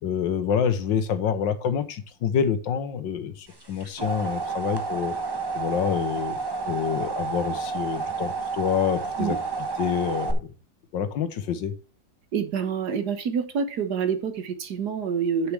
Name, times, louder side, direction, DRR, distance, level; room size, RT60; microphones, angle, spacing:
voice 1, 0.0-5.2 5.5-6.4 6.7-9.4 9.8-10.5 10.9-11.7, left 8 dB, 85° left, 11 dB, 1.8 m, -27 dB
sound 1, 3.6-10.3, right 4 dB, 15° right, 0.9 m, -30 dB
voice 2, 12.3-15.5, right 6 dB, 60° right, 10 dB, 1.7 m, -27 dB
7.8 x 6.8 x 4.6 m, 0.35 s
omnidirectional pair, 2.0 m